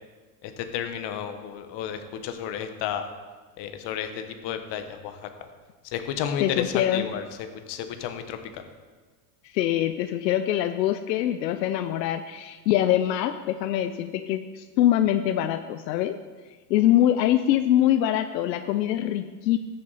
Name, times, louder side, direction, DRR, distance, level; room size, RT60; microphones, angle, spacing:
voice 1, 0.4-3.1 3.6-5.1 5.9-7.2 7.7-8.4, left 9 dB, 55° left, 8 dB, 1.3 m, -32 dB
voice 2, 6.4-7.1 9.4-16.2 16.7-19.6, left 12 dB, 90° left, 9 dB, 0.6 m, -24 dB
14.5 x 6.6 x 4.2 m, 1.4 s
supercardioid pair, 95°, 49 cm